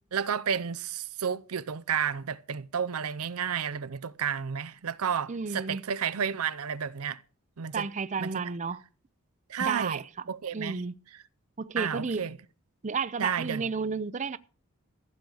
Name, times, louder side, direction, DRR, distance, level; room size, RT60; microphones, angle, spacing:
voice 1, 0.1-7.2 7.6-7.9 8.2-8.4 9.5-10.0 10.3-10.8 11.1-11.2 11.8-12.4 13.2-13.6, right 7 dB, 80° right, 0.6 m, -31 dB
voice 2, 5.3-5.8 7.7-8.8 9.6-10.0 10.5-10.9 11.6-12.2 12.8-14.4, right 5 dB, 35° right, 0.5 m, -32 dB
15.0 x 8.4 x 6.3 m
head